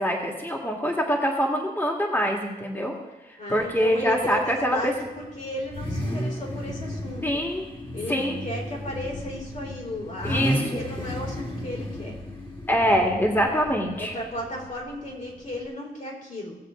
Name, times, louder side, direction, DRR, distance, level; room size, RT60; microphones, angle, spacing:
voice 1, 0.0-2.9 3.3-4.9 7.2-7.6 8.1-8.4 10.2-10.8 12.7-14.2, equal, 15° left, 0 dB, 2.1 m, -24 dB
voice 2, 3.4-7.4 7.9-12.2 14.0-16.6, left 1 dB, 55° left, -2 dB, 4.1 m, -35 dB
Car / Idling / Accelerating revving vroom, 3.6-15.7, equal, 30° left, 2.4 m, -34 dB
18.5 x 7.5 x 3.8 m, 1.1 s
cardioid pair, 85°, 16 cm